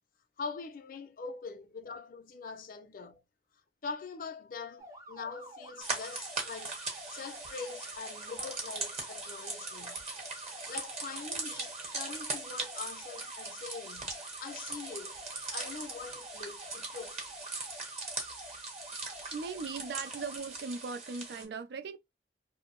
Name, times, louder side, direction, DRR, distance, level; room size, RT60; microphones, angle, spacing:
voice 1, 0.4-3.2 3.8-6.8 7.1-10.1 10.7-15.2 15.5-17.3, left 5 dB, 50° left, 0.4 m, -43 dB
sound 1, 4.8-20.4, equal, 20° right, 0.6 m, -49 dB
sound 2, 5.8-21.4, right 3 dB, 35° right, 0.9 m, -40 dB
voice 2, 19.3-22.0, right 4 dB, 65° right, 0.3 m, -39 dB
2.5 x 2.0 x 2.8 m
head